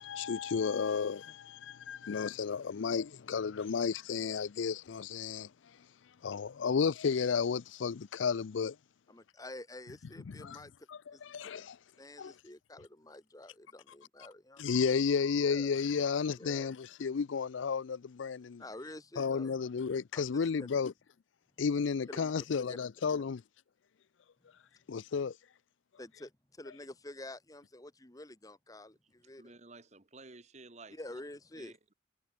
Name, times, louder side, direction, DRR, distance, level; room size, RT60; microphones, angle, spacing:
voice 1, 0.0-5.5 6.2-8.8 10.3-10.6 10.9-11.8 12.2-12.3 14.6-18.6 19.2-20.9 21.6-23.4 24.9-25.4, left 6 dB, 80° left, 0.5 m, -32 dB
voice 2, 9.1-10.7 11.1-11.2 12.0-14.6 15.4-15.7 16.4-16.7 18.6-19.5 20.1-20.7 22.1-22.3 22.7-22.8 26.0-29.6 30.9-31.8, left 1 dB, 20° left, 1.4 m, -48 dB
voice 3, 29.4-31.2 31.6-31.9, right 3 dB, 35° right, 1.5 m, -53 dB
head